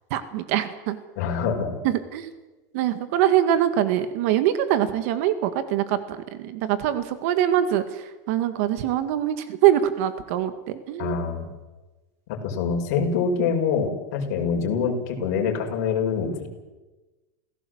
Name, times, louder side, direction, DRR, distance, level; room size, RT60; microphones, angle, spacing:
voice 1, 0.1-1.0 1.8-2.3 2.7-11.2, right 11 dB, 55° right, 10 dB, 1.9 m, -23 dB
voice 2, 1.2-1.8 11.0-11.5 12.3-16.5, left 6 dB, 60° left, 2 dB, 5.4 m, -25 dB
28.0 x 17.0 x 7.9 m, 1.2 s
supercardioid pair, 165°, 9 cm